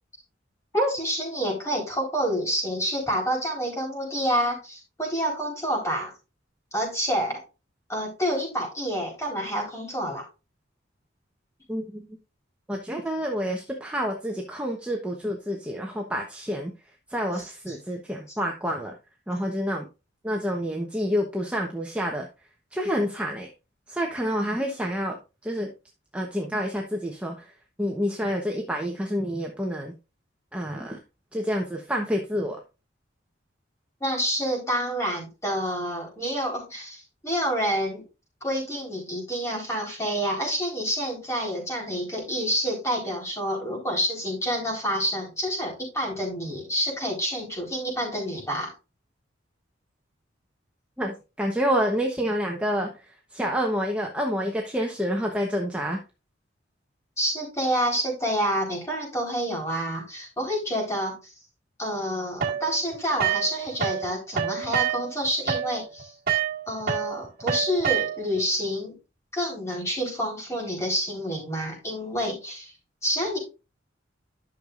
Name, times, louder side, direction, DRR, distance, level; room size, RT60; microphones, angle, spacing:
voice 1, 0.7-6.1 6.7-7.4 7.9-10.2 34.0-38.0 38.4-48.7 57.2-61.3 61.8-66.1 66.7-69.0 69.3-72.7 73.0-73.4, equal, 15° left, -1 dB, 4.1 m, -28 dB
voice 2, 11.7-12.1 12.7-16.7 17.1-18.9 19.3-19.9 20.2-22.3 22.7-23.5 23.9-25.7 26.1-27.5 27.8-29.9 30.5-31.0 31.3-32.6 51.0-56.0, equal, 5° right, 0 dB, 1.0 m, -28 dB
sound 1, 62.4-64.1 64.3-68.4, right 8 dB, 50° right, 1.9 m, -27 dB
11.5 x 6.6 x 2.5 m, 0.29 s
head